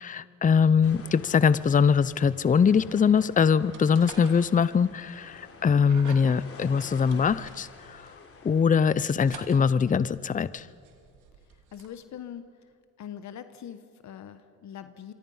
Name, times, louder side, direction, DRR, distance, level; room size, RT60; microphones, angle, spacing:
voice 1, 0.0-8.0 8.4-10.7, left 6 dB, 25° left, 17 dB, 0.6 m, -22 dB
sound 1, 0.8-8.6, left 4 dB, 50° left, 3.6 m, -48 dB
sound 2, 2.1-11.9, right 7 dB, 85° right, 2.8 m, -50 dB
voice 2, 11.7-12.5 13.0-15.1, left 9 dB, 65° left, 10 dB, 1.2 m, -42 dB
27.5 x 23.5 x 5.7 m, 2.4 s
cardioid pair, 90°, 30 cm